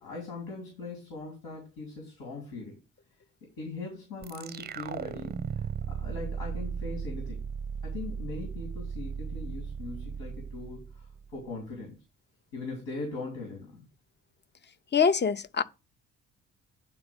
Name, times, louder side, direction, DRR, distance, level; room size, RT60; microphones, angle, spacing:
voice 1, 0.0-2.7 3.6-7.4 7.8-11.0 11.3-12.0 12.5-13.8, left 3 dB, 80° left, 3.2 m, -40 dB
sound 1, 4.2-11.5, right 6 dB, 25° right, 0.4 m, -36 dB
voice 2, 14.9-15.6, left 6 dB, 25° left, 0.7 m, -24 dB
9.7 x 3.9 x 5.2 m
hypercardioid pair, 45°, 39 cm